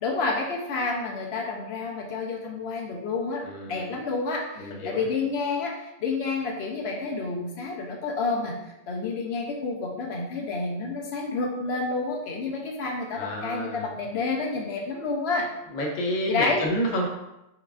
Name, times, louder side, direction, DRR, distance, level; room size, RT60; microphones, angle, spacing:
voice 1, 0.0-8.5 8.9-15.5 16.3-16.6, left 3 dB, 75° left, 0 dB, 0.8 m, -29 dB
voice 2, 3.4-3.9 4.6-5.1 13.1-13.9 15.7-17.1, equal, 50° left, -1 dB, 0.7 m, -29 dB
4.7 x 2.4 x 2.3 m, 0.92 s
omnidirectional pair, 1.1 m